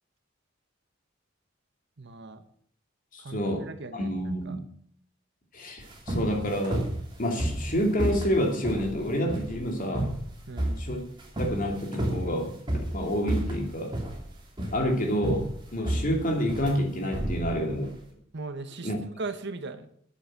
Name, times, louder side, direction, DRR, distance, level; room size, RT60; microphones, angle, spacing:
voice 1, 2.0-2.4 3.2-4.1 4.4-4.5 10.5-10.8 18.3-18.9 19.2-19.9, right 3 dB, 60° right, 10 dB, 1.1 m, -38 dB
voice 2, 3.1-3.7 3.9-4.6 5.5-6.9 7.2-10.1 10.8-11.0 11.4-12.6 12.9-13.9 14.7-17.9 18.8-19.0, equal, 45° left, 2 dB, 2.7 m, -28 dB
sound 1, 5.8-18.0, right 1 dB, 25° right, 3.3 m, -32 dB
10.0 x 8.7 x 7.5 m, 0.63 s
head